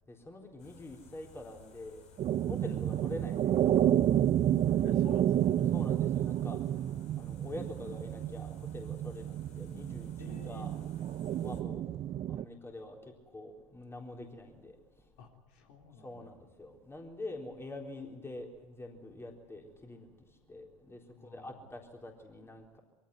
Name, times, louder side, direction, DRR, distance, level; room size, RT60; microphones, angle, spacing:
voice 1, 0.1-2.0 2.4-3.5 5.7-6.6 7.2-10.7 11.4-11.8 12.3-13.0 13.3-14.8 16.0-20.1 20.5-21.0 21.3-22.8, left 2 dB, 15° left, 2 dB, 3.9 m, -45 dB
sound 1, 0.6-11.6, left 6 dB, 40° left, 4.8 m, -59 dB
sound 2, 2.2-12.4, right 11 dB, 35° right, 0.6 m, -30 dB
voice 2, 4.8-5.6 10.2-10.7 15.2-16.3 21.1-21.6, left 5 dB, 65° left, 1 dB, 3.8 m, -52 dB
23.0 x 16.0 x 9.4 m, 1.3 s
hypercardioid pair, 80°, 18 cm